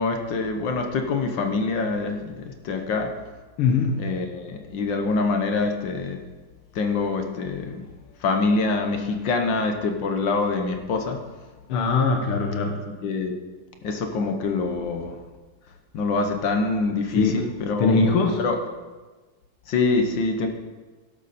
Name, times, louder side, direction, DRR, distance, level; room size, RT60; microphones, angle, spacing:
voice 1, 0.0-3.1 4.0-6.2 6.7-7.8 8.2-11.2 13.0-13.4 13.8-15.1 15.9-18.1 18.4-18.6 19.7-20.5, left 3 dB, 60° left, 5 dB, 1.7 m, -25 dB
voice 2, 3.6-4.1 11.7-12.8 17.2-17.5 17.8-18.4, left 4 dB, 80° left, 2 dB, 2.0 m, -21 dB
12.0 x 12.0 x 4.2 m, 1.3 s
omnidirectional pair, 2.4 m